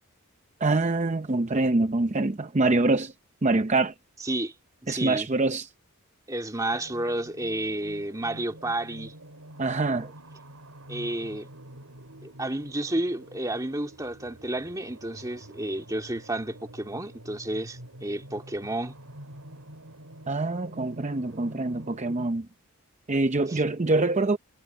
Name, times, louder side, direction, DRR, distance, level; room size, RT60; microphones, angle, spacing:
voice 1, 0.6-3.1 3.4-3.9 4.9-5.7 9.6-10.1 20.3-22.5 23.1-24.4, right 2 dB, 30° right, 0.6 m, -25 dB
voice 2, 4.2-4.5 4.8-5.3 6.3-9.1 10.9-11.5 12.2-18.9 23.5-23.6, right 1 dB, 15° right, 2.6 m, -31 dB
sound 1, 6.7-22.3, right 1 dB, 75° right, 5.3 m, -47 dB
head